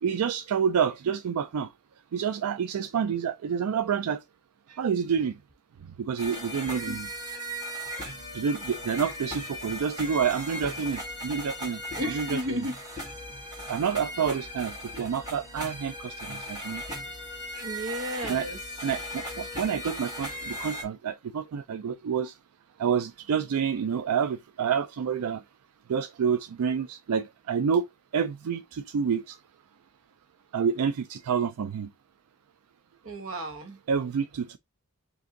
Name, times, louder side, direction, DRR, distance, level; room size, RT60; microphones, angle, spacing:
voice 1, 0.0-1.7 2.1-4.2 4.7-5.4 6.0-7.1 8.3-11.8 12.1-12.6 13.7-16.8 18.3-18.5 18.8-22.3 22.8-25.4 25.9-27.9 28.1-29.4 30.5-31.9 33.9-34.6, right 7 dB, 85° right, 0.4 m, -28 dB
sound 1, 6.2-20.8, equal, 20° right, 1.9 m, -38 dB
voice 2, 12.0-12.7 17.6-18.6 33.0-33.8, equal, 65° right, 1.2 m, -33 dB
5.0 x 2.7 x 3.8 m
head